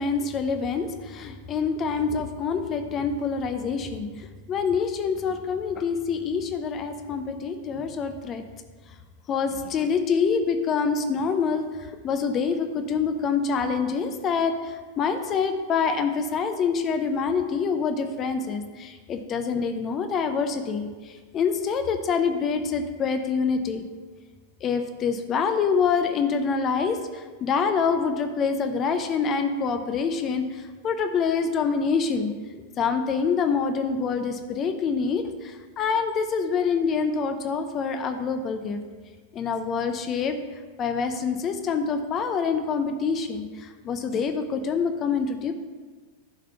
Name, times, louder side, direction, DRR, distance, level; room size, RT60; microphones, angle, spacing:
voice 1, 0.0-8.4 9.3-23.9 24.6-32.3 32.8-38.8 39.3-40.4 40.8-45.5, left 5 dB, 30° left, 7 dB, 0.7 m, -26 dB
11.0 x 5.1 x 5.6 m, 1.4 s
figure-of-eight pair, 90°, 0 cm